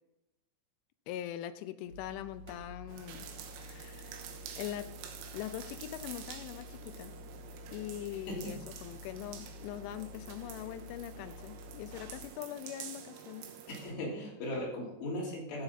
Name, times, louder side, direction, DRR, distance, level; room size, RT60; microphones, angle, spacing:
voice 1, 1.1-3.3 3.6-4.2 4.6-4.9 5.3-7.1 7.7-13.5, left 12 dB, 85° left, 11 dB, 2.8 m, -42 dB
sound 1, 1.9-12.3, left 3 dB, 65° right, 1.7 m, -50 dB
sound 2, 2.9-13.9, right 9 dB, 85° right, 3.8 m, -48 dB
voice 2, 13.7-15.6, left 1 dB, 55° left, -4 dB, 4.9 m, -38 dB
13.5 x 8.0 x 4.0 m, 0.93 s
omnidirectional pair, 5.9 m